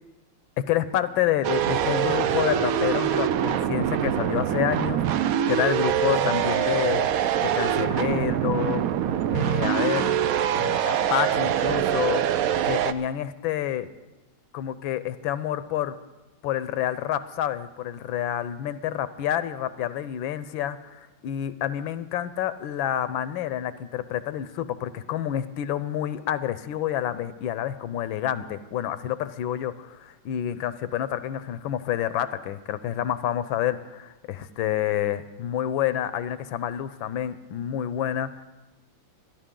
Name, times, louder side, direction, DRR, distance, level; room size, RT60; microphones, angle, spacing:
voice 1, 0.6-7.1 7.4-8.9 9.3-10.1 10.5-12.2 12.6-13.9 14.5-16.0 16.4-38.4, left 11 dB, 80° left, 13 dB, 1.4 m, -28 dB
sound 1, 1.4-12.9, right 10 dB, 90° right, 0.7 m, -24 dB
25.0 x 10.5 x 3.7 m, 1.1 s
omnidirectional pair, 2.1 m